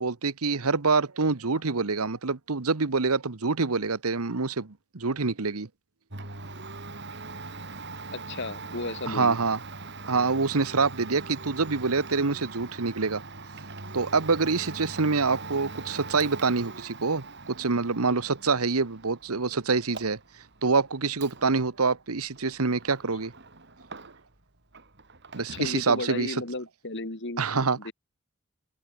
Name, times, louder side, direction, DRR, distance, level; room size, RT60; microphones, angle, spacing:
voice 1, 0.0-5.7 9.1-9.6 10.1-13.2 13.9-20.2 20.6-23.3 25.3-26.4 27.4-27.8, right 4 dB, 85° right, 1.2 m, -26 dB
Domestic sounds home sounds, 6.1-24.4 24.7-25.8, right 3 dB, 50° right, 4.1 m, -42 dB
voice 2, 8.1-9.4 25.5-27.9, left 2 dB, 55° left, 2.2 m, -35 dB
open air
head